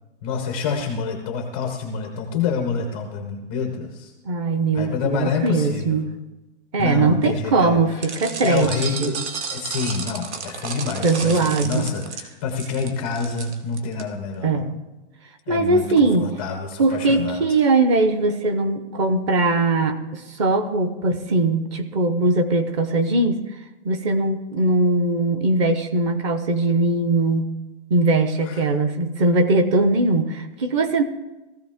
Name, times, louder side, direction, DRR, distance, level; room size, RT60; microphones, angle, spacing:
voice 1, 0.2-4.1 4.7-6.0 6.8-8.0 8.4-14.7 15.5-17.4 28.4-28.6, left 5 dB, 10° left, 3 dB, 0.4 m, -27 dB
voice 2, 4.3-6.1 6.7-8.7 9.0-9.1 11.0-11.9 14.4-14.7 15.5-16.3 16.8-23.4 23.8-27.5 27.9-31.0, right 3 dB, 25° right, 10 dB, 0.7 m, -20 dB
sound 1, 8.0-14.0, right 5 dB, 70° right, 1.7 m, -33 dB
16.5 x 14.0 x 3.5 m, 1.0 s
hypercardioid pair, 170°, 35 cm